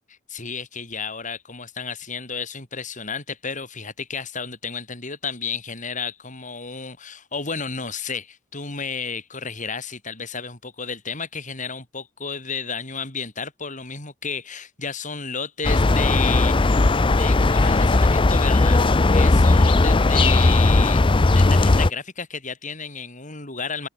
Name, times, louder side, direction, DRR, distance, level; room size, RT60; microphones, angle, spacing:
voice 1, 0.1-16.8 17.2-18.8 19.1-21.1 21.3-23.9, left 5 dB, 40° left, 6.4 m, -32 dB
sound 1, 15.6-21.9, left 2 dB, 25° left, 0.5 m, -17 dB
open air
head